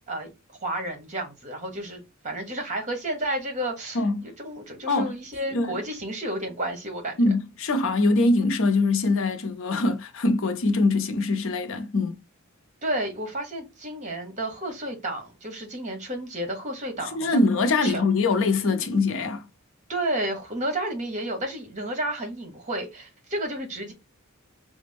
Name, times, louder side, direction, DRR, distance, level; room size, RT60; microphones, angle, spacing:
voice 1, 0.6-7.2 12.8-17.4 17.8-18.1 19.9-23.9, right 1 dB, 35° right, 1.2 m, -31 dB
voice 2, 3.9-4.3 4.9-5.1 5.5-5.8 7.2-12.2 17.1-19.5, left 3 dB, 65° left, 0.6 m, -23 dB
4.9 x 2.1 x 3.4 m
head